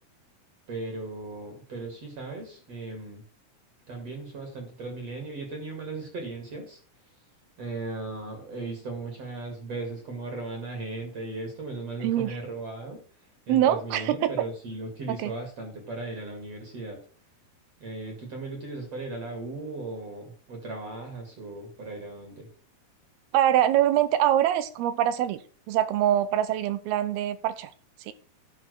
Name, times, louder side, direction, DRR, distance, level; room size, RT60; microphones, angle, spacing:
voice 1, 0.7-3.2 3.9-6.8 7.6-13.0 13.5-17.0 17.8-22.5, right 3 dB, 45° right, 3 dB, 2.8 m, -37 dB
voice 2, 12.0-12.4 13.5-14.3 15.1-15.3 23.3-25.4 25.7-27.7 28.0-28.1, right 11 dB, 75° right, 13 dB, 2.6 m, -24 dB
10.5 x 5.5 x 6.3 m, 0.41 s
omnidirectional pair, 4.7 m